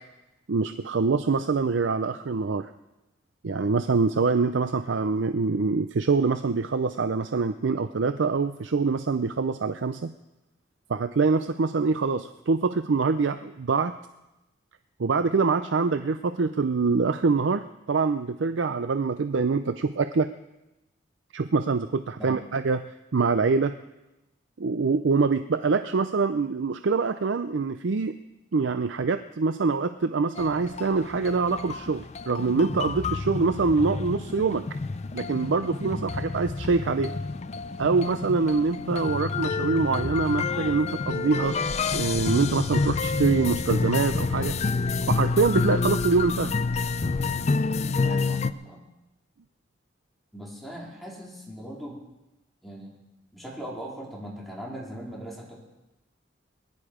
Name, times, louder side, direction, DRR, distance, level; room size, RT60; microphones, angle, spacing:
voice 1, 0.5-2.7 3.4-10.1 10.9-13.9 15.0-20.3 21.3-22.8 23.1-23.7 24.6-28.2 28.5-34.6 35.1-37.2 37.8-41.6 41.9-44.6 45.1-46.5, right 4 dB, 70° right, 10 dB, 0.5 m, -25 dB
sound 1, 30.4-48.5, left 4 dB, 35° left, 0.4 m, -28 dB
voice 2, 48.0-48.8 50.3-52.0 52.6-52.9 53.3-55.6, equal, ahead, -4 dB, 3.5 m, -39 dB
21.0 x 11.0 x 5.0 m, 0.98 s
head